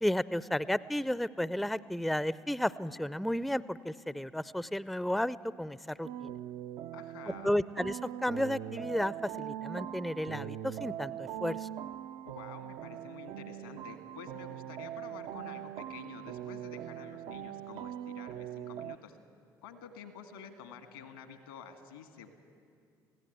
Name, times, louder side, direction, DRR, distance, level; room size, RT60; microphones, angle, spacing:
voice 1, 0.0-6.3 7.4-11.7, left 1 dB, ahead, 18 dB, 0.4 m, -33 dB
sound 1, 6.0-19.0, right 11 dB, 60° right, 0.4 m, -41 dB
voice 2, 6.9-7.6 12.2-19.2 19.6-22.3, left 6 dB, 80° left, 7 dB, 1.8 m, -49 dB
20.5 x 16.5 x 9.2 m, 2.3 s
figure-of-eight pair, 55°, 11 cm